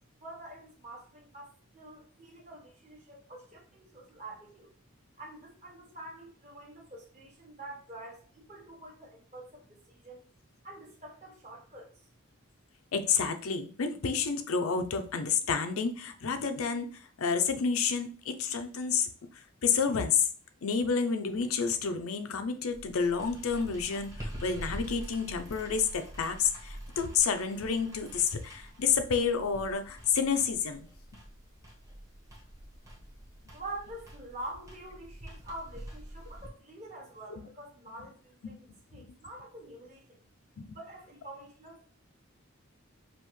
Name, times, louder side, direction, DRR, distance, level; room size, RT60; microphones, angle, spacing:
voice 1, 0.2-4.7 5.2-10.2 10.6-11.9 33.5-38.6 38.9-40.2 40.7-41.9, right 1 dB, 30° right, -2 dB, 1.3 m, -46 dB
voice 2, 12.9-20.3 20.6-30.8 37.4-37.5 38.4-38.5 38.9-39.0 40.6-40.8, left 6 dB, 80° left, 7 dB, 0.5 m, -30 dB
sound 1, 22.7-36.5, equal, 15° right, 1.0 m, -46 dB
5.4 x 2.5 x 3.1 m, 0.40 s
head